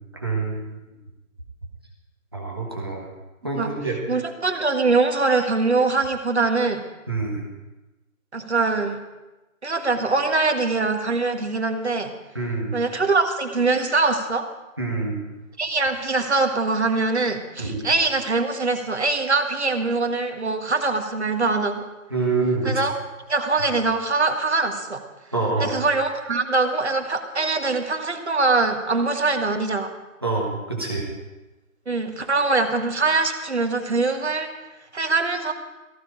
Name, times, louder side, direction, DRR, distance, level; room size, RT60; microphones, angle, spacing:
voice 1, 0.1-0.6 2.3-3.1 3.4-4.0 7.1-7.4 12.3-12.8 14.8-15.2 17.6-17.9 22.1-22.7 23.6-23.7 25.3-25.8 30.2-31.0, right 3 dB, 15° right, -2 dB, 1.4 m, -26 dB
voice 2, 4.1-6.8 8.3-9.0 9.6-12.1 12.7-14.5 15.6-21.9 22.6-22.9 23.3-25.0 25.6-29.9 31.9-34.5 34.9-35.5, right 3 dB, 50° right, 5 dB, 1.7 m, -23 dB
15.0 x 14.5 x 5.1 m, 1.1 s
figure-of-eight pair, 180°, 42 cm